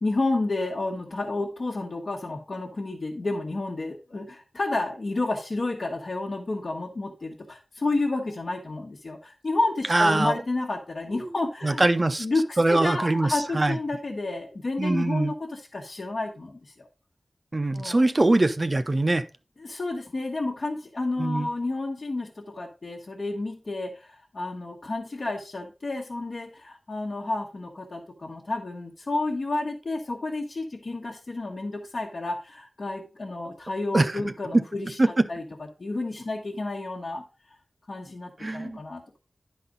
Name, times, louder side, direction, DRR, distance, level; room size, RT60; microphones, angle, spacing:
voice 1, 0.0-11.8 12.2-16.9 17.7-18.0 19.6-35.0 35.3-35.4 35.8-37.2 37.9-39.2, left 2 dB, 60° left, 1.1 m, -30 dB
voice 2, 9.9-10.4 11.1-11.3 11.6-12.3 12.6-13.8 14.8-15.3 17.5-19.2 21.2-21.5 33.9-34.2 35.0-35.1 38.4-38.8, right 2 dB, 35° right, 0.5 m, -23 dB
10.5 x 4.1 x 3.8 m
wide cardioid pair, 95°, 0 cm